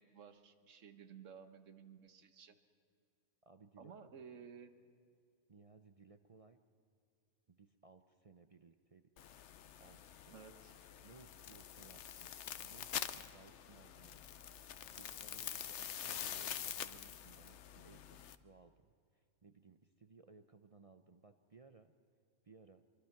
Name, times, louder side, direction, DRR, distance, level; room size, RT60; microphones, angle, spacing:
voice 1, 0.0-2.6 3.8-4.7 10.3-10.8, right 7 dB, 60° right, 9 dB, 1.4 m, -55 dB
voice 2, 3.4-3.9 5.5-6.6 7.5-9.1 9.8-10.4 11.0-12.3 12.6-14.3 14.9-18.9 19.4-21.9 22.4-22.8, right 4 dB, 40° right, 8 dB, 0.5 m, -62 dB
sound 1, 9.2-18.4, left 9 dB, 60° left, 0.9 m, -46 dB
24.0 x 24.0 x 5.9 m, 2.2 s
omnidirectional pair, 1.5 m